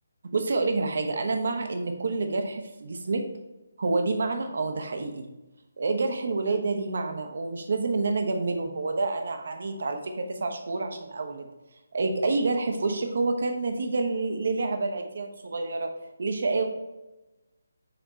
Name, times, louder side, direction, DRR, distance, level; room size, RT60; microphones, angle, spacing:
voice 1, 0.3-3.2 3.8-5.2 5.8-11.5 11.9-15.9 16.2-16.6, right 3 dB, 55° right, 5 dB, 0.9 m, -28 dB
6.7 x 3.4 x 4.4 m, 1.0 s
figure-of-eight pair, 145°, 0 cm